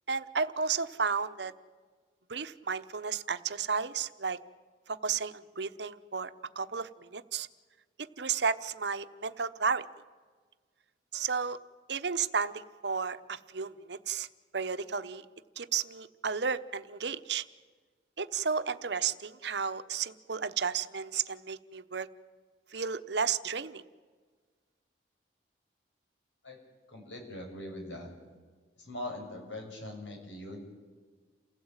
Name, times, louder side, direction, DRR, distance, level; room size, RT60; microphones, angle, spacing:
voice 1, 0.1-1.5 2.3-4.4 4.9-7.5 8.0-9.8 11.1-11.6 11.9-14.3 14.5-15.2 15.6-17.4 18.2-22.1 22.7-23.8, right 6 dB, 70° right, 12 dB, 0.9 m, -33 dB
voice 2, 26.9-28.1 28.8-30.6, left 1 dB, 85° left, 2 dB, 6.8 m, -41 dB
28.5 x 16.5 x 9.0 m, 1.5 s
head